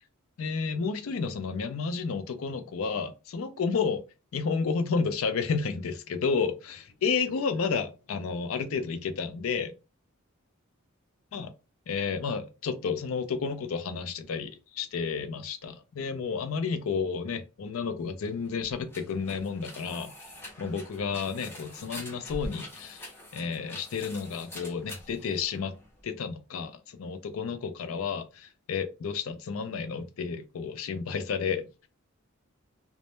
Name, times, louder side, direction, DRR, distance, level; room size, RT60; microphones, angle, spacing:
voice 1, 0.4-4.0 4.3-9.7 11.3-11.5 11.9-20.1 20.6-25.7 26.0-31.7, left 5 dB, 70° left, 0.4 m, -31 dB
sound 1, 18.1-26.0, left 1 dB, 10° left, 0.5 m, -45 dB
2.1 x 2.1 x 2.9 m
head